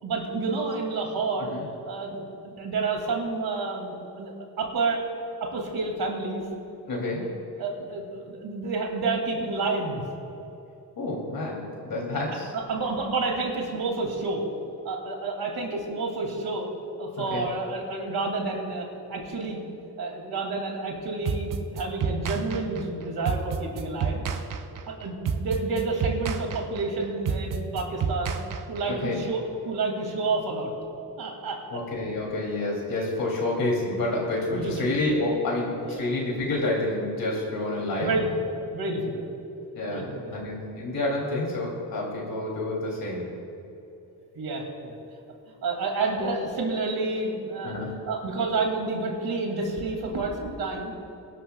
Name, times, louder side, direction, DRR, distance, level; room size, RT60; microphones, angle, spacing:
voice 1, 0.0-1.5 1.8-4.3 4.6-5.0 5.4-6.4 7.6-10.0 12.1-14.4 14.8-16.7 17.0-19.6 20.0-24.2 24.9-28.4 28.7-29.4 29.6-30.7 31.2-31.8 34.5-34.9 35.8-36.1 36.5-36.6 38.0-38.3 38.7-39.2 39.9-40.3 44.3-45.0 45.6-47.8 48.0-50.9, right 3 dB, 80° right, 1 dB, 2.7 m, -29 dB
voice 2, 6.9-7.3 11.0-12.5 17.2-17.5 28.9-29.2 31.7-38.1 39.7-40.1 40.3-43.3 47.6-48.0, left 2 dB, 70° left, -3 dB, 3.2 m, -28 dB
sound 1, 21.3-29.1, right 6 dB, 60° right, 0.8 m, -30 dB
23.5 x 12.5 x 2.4 m, 2.9 s
cardioid pair, 100°, 37 cm